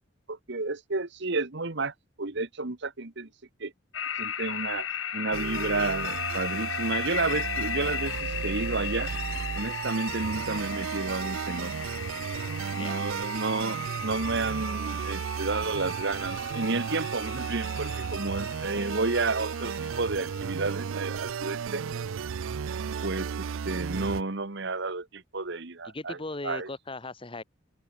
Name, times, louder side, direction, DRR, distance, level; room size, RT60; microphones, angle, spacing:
voice 1, 0.3-3.3 3.6-3.7 4.2-4.9 5.1-9.1 9.5-11.7 12.8-21.8 23.0-26.2 26.4-26.7, right 3 dB, 60° right, 1.5 m, -31 dB
sound 1, 3.9-20.7, left 8 dB, 80° left, 4.1 m, -37 dB
sound 2, 5.3-24.2, right 7 dB, 90° right, 0.4 m, -34 dB
voice 2, 25.8-27.4, left 2 dB, 25° left, 1.4 m, -38 dB
head